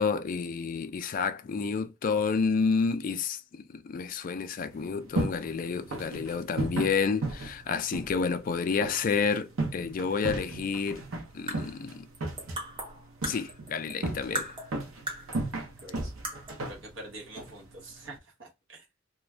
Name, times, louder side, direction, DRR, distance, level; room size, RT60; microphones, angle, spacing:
voice 1, 0.0-3.4 3.7-11.0 11.3-12.0 13.2-14.5, left 5 dB, 40° left, 0.3 m, -29 dB
sound 1, 4.7-18.2, right 2 dB, 85° right, 0.7 m, -36 dB
sound 2, 11.2-14.0 14.3-15.5 15.8-15.9 16.2-16.7, right 1 dB, 25° right, 0.8 m, -38 dB
voice 2, 15.8-16.1 16.6-18.8, right 2 dB, 65° right, 1.0 m, -45 dB
2.4 x 2.2 x 3.2 m
head